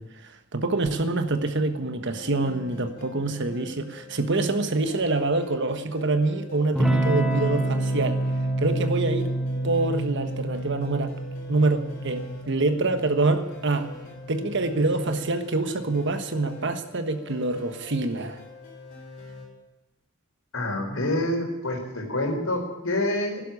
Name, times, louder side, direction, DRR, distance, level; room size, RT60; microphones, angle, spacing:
voice 1, 0.0-8.2 8.6-9.3 9.6-11.1 11.5-13.9 14.3-18.4, right 2 dB, 60° right, 9 dB, 1.4 m, -26 dB
sound 1, 2.2-19.5, left 2 dB, 45° left, 5.9 m, -45 dB
Electric guitar / Strum, 6.7-15.0, right 1 dB, 5° right, 2.0 m, -28 dB
voice 2, 20.5-23.4, left 1 dB, 75° left, 2 dB, 4.1 m, -27 dB
11.5 x 11.5 x 8.6 m, 1.0 s
head